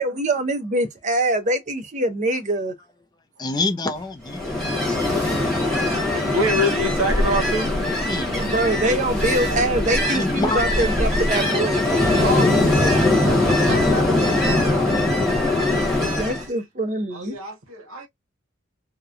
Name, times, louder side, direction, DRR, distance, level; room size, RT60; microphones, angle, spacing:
voice 1, 0.0-2.7 8.3-11.8 16.2-17.4, right 1 dB, 35° right, 0.6 m, -24 dB
voice 2, 3.4-5.0 7.8-8.3 10.0-10.6 12.1-13.0, left 2 dB, 20° left, 0.4 m, -28 dB
sound 1, 3.6-10.1, right 2 dB, 20° right, 1.2 m, -41 dB
Ocean, 4.3-16.4, left 2 dB, ahead, 1.1 m, -21 dB
voice 3, 4.6-7.8 8.7-9.8 12.2-15.0 16.0-16.1 17.1-18.1, equal, 85° right, 0.9 m, -28 dB
2.8 x 2.1 x 2.4 m
head